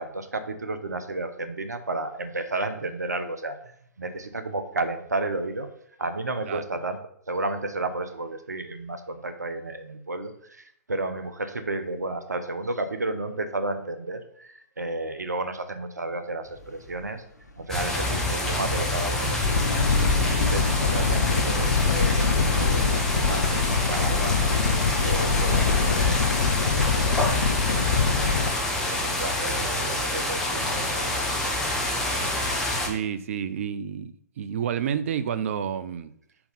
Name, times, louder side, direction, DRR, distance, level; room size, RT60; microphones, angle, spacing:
voice 1, 0.0-5.7 6.0-7.0 7.3-17.2 17.6-19.7 20.3-24.4 25.0-26.4 26.7-28.4 28.9-31.7, right 2 dB, 85° right, 0.9 m, -32 dB
sound 1, 16.4-24.8, left 3 dB, 80° left, 1.1 m, -39 dB
sound 2, 17.7-32.9, left 1 dB, 5° left, 1.5 m, -27 dB
sound 3, 19.4-28.5, left 5 dB, 65° left, 0.8 m, -24 dB
voice 2, 32.8-36.1, right 8 dB, 50° right, 0.6 m, -29 dB
5.3 x 4.6 x 5.4 m
figure-of-eight pair, 120°, 9 cm